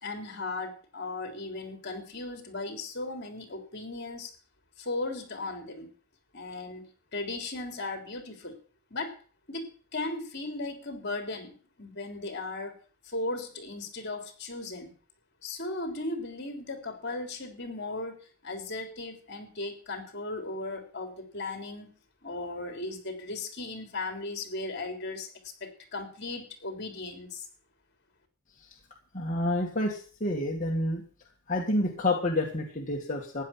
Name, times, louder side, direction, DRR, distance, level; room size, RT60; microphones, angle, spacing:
voice 1, 0.0-4.3 4.8-5.9 6.3-6.9 7.1-8.6 8.9-9.1 9.5-12.8 13.0-14.9 15.4-18.2 18.4-21.9 22.2-25.3 25.6-27.5, left 2 dB, 55° left, 5 dB, 3.5 m, -36 dB
voice 2, 29.1-31.0 31.5-33.4, left 1 dB, 40° left, -2 dB, 2.2 m, -29 dB
15.0 x 10.0 x 5.9 m, 0.41 s
head